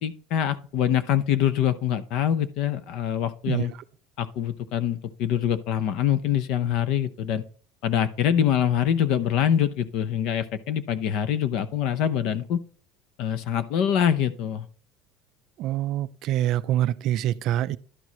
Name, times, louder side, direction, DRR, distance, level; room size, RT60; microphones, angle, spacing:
voice 1, 0.0-3.7 4.2-7.4 7.8-12.6 13.2-14.7, left 9 dB, 50° left, 0.7 m, -24 dB
voice 2, 15.6-17.8, right 12 dB, 45° right, 0.3 m, -25 dB
11.5 x 4.7 x 4.0 m
cardioid pair, 170°, 0 cm